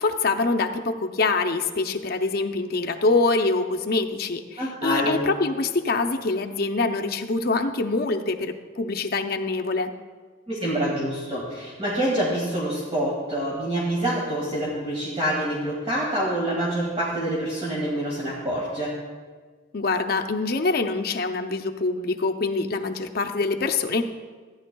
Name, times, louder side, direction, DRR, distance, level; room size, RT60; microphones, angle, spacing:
voice 1, 0.0-9.9 19.7-24.0, left 3 dB, 55° left, 5 dB, 0.6 m, -25 dB
voice 2, 4.6-5.2 10.5-18.9, right 1 dB, 30° right, -6 dB, 1.9 m, -26 dB
14.5 x 10.0 x 2.3 m, 1.4 s
head